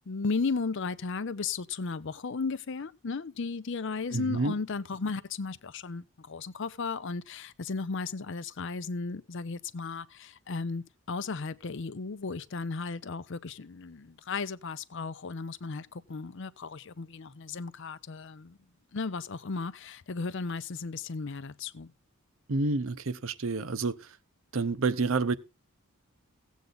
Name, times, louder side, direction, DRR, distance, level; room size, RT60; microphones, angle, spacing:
voice 1, 0.1-18.6 18.9-21.9, left 4 dB, 55° left, 0.6 m, -35 dB
voice 2, 4.1-4.5 22.5-24.0 24.5-25.4, right 3 dB, 65° right, 0.8 m, -28 dB
15.5 x 8.2 x 3.9 m
head